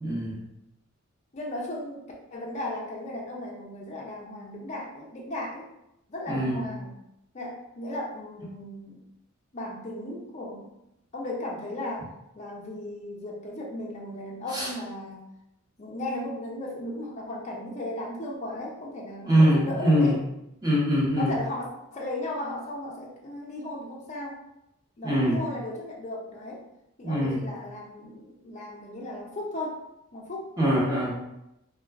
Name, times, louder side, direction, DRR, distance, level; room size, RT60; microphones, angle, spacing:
voice 1, 0.0-0.4 6.3-6.6 14.5-14.7 19.2-20.1 20.6-21.3 25.0-25.4 27.0-27.4 30.6-31.2, equal, 20° right, -6 dB, 0.8 m, -23 dB
voice 2, 1.3-5.7 6.1-6.9 7.3-9.0 9.5-10.7 11.1-15.2 15.8-20.2 21.2-24.4 25.0-26.6 27.0-29.8 30.1-30.5, left 1 dB, 30° left, -2 dB, 0.4 m, -36 dB
2.3 x 2.3 x 3.3 m, 0.85 s
head